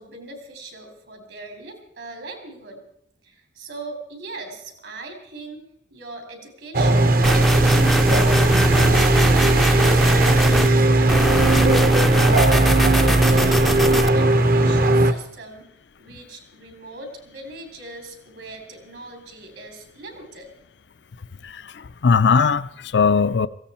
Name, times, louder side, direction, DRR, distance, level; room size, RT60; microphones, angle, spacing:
voice 1, 0.0-2.8 3.2-5.6 5.9-7.9 8.2-11.3 11.7-15.7 16.0-20.5, right 2 dB, 70° right, 3.3 m, -39 dB
sound 1, 6.7-15.1, right 2 dB, 50° right, 0.9 m, -17 dB
sound 2, 7.2-10.7 11.1-14.1, equal, ahead, 0.5 m, -22 dB
voice 2, 21.4-23.5, left 5 dB, 70° left, 0.5 m, -19 dB
18.0 x 15.0 x 4.3 m
head